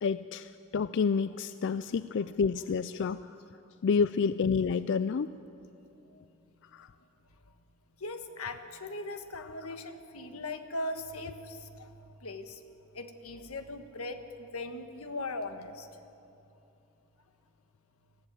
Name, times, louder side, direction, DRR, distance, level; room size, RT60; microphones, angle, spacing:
voice 1, 0.0-3.2 3.8-5.3 6.7-6.9, left 5 dB, 55° left, 14 dB, 0.4 m, -29 dB
voice 2, 1.5-1.9 8.0-11.9 12.2-12.6 12.9-15.9, left 2 dB, 90° left, 7 dB, 1.5 m, -39 dB
20.0 x 14.5 x 9.1 m, 2.8 s
head